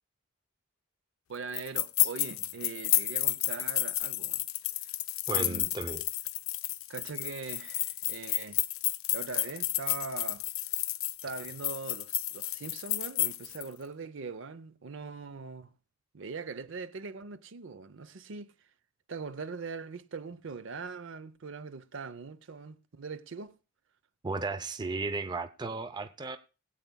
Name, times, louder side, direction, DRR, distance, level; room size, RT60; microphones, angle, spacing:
voice 1, 1.3-4.4 5.3-5.7 6.9-8.6 9.1-10.4 11.2-15.7 16.1-18.5 19.1-23.6, right 4 dB, 60° right, 0.6 m, -41 dB
sound 1, 1.5-13.7, left 17 dB, 70° left, 0.5 m, -31 dB
voice 2, 5.3-6.0 24.2-26.4, right 3 dB, 20° right, 0.5 m, -34 dB
20.5 x 8.1 x 2.2 m
head